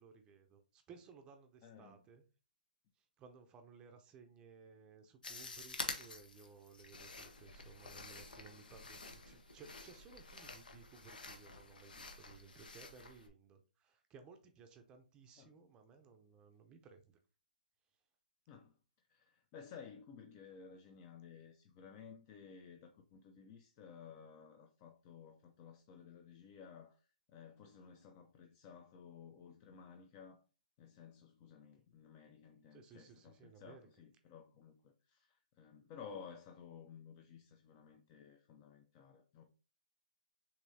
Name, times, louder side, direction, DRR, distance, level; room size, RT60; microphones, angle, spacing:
voice 1, 0.0-2.2 3.0-17.2 32.7-33.9, right 5 dB, 20° right, 0.6 m, -59 dB
voice 2, 1.6-2.0 15.4-15.5 18.5-18.7 19.1-27.0 27.3-30.4 30.8-39.4, left 6 dB, 30° left, 0.5 m, -55 dB
sound 1, 5.2-13.3, left 3 dB, 80° left, 0.9 m, -49 dB
6.8 x 2.7 x 2.7 m
hypercardioid pair, 140°, 5 cm